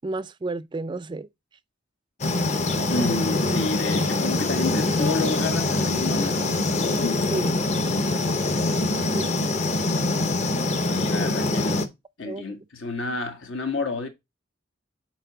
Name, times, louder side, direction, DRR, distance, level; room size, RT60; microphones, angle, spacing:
voice 1, 0.0-1.3 7.3-7.6 9.1-9.7 12.2-12.5, right 2 dB, 25° right, 0.4 m, -32 dB
sound 1, 2.2-11.9, left 2 dB, 35° left, 0.7 m, -24 dB
sound 2, 2.6-7.4 7.7-7.9, left 4 dB, 60° left, 2.0 m, -37 dB
voice 2, 2.9-6.5 10.9-11.9 12.2-14.1, left 3 dB, 80° left, 1.6 m, -30 dB
6.6 x 4.5 x 4.0 m
head